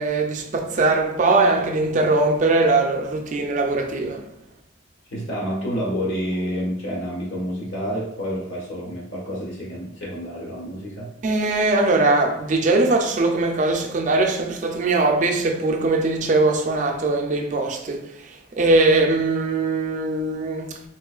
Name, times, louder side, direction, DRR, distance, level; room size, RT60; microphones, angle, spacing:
voice 1, 0.0-4.3 11.2-20.8, right 2 dB, 40° right, 0.4 m, -21 dB
voice 2, 5.1-11.1, equal, 85° left, 1.3 m, -29 dB
3.7 x 3.0 x 2.3 m
head